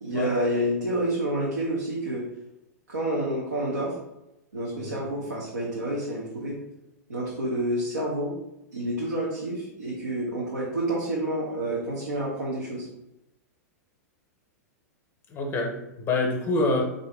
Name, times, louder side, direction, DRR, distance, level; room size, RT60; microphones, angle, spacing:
voice 1, 0.0-2.3 2.9-4.0 4.5-6.6 7.1-8.3 8.7-12.9, right 1 dB, 90° right, -4 dB, 0.7 m, -29 dB
voice 2, 15.3-16.8, left 2 dB, 25° left, 2 dB, 0.7 m, -26 dB
3.3 x 2.6 x 3.5 m, 0.91 s
hypercardioid pair, 105°, 9 cm